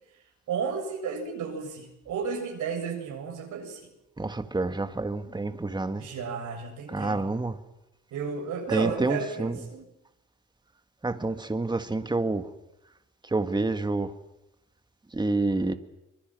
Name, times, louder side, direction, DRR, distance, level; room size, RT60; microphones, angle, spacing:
voice 1, 0.5-3.8 6.0-7.2 8.1-9.9, right 6 dB, 80° right, 3 dB, 7.7 m, -33 dB
voice 2, 4.2-6.0 6.9-7.6 8.7-9.6 11.0-12.5 13.2-14.1 15.1-15.7, right 2 dB, 15° right, 8 dB, 1.9 m, -28 dB
25.5 x 23.0 x 7.7 m, 0.90 s
cardioid pair, 90°, 30 cm